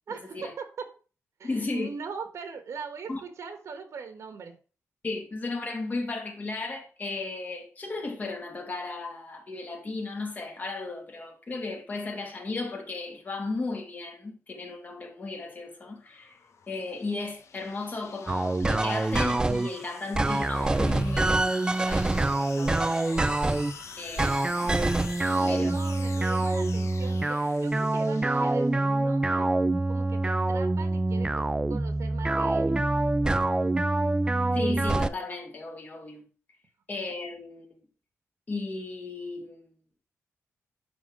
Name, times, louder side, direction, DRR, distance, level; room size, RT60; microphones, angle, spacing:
voice 1, 0.1-0.9 1.4-4.6 25.2-29.5 29.9-32.8, right 5 dB, 65° right, 1.4 m, -40 dB
voice 2, 1.4-1.9 3.1-3.2 5.0-16.4 16.7-22.2 22.6-22.9 24.0-24.8 25.5-25.7 34.5-36.2 36.9-37.8 38.5-39.6, left 3 dB, 30° left, 2.2 m, -35 dB
sound 1, 15.6-29.0, left 6 dB, 65° left, 1.1 m, -46 dB
sound 2, 18.3-19.7 20.1-23.7 24.2-35.1, right 2 dB, 15° right, 0.4 m, -25 dB
10.5 x 3.9 x 6.2 m
wide cardioid pair, 145°, 5 cm